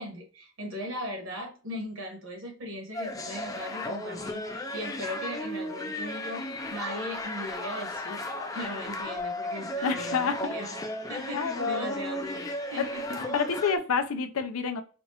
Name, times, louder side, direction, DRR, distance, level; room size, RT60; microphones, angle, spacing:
voice 1, 0.0-8.2 8.5-10.7 11.1-13.2, equal, 60° right, 1.4 m, -38 dB
sound 1, 2.9-13.8, left 1 dB, 15° left, 0.3 m, -35 dB
voice 2, 9.8-10.3 11.3-12.0 12.8-12.9 13.3-14.8, left 5 dB, 75° left, 0.5 m, -28 dB
4.4 x 2.4 x 2.8 m
head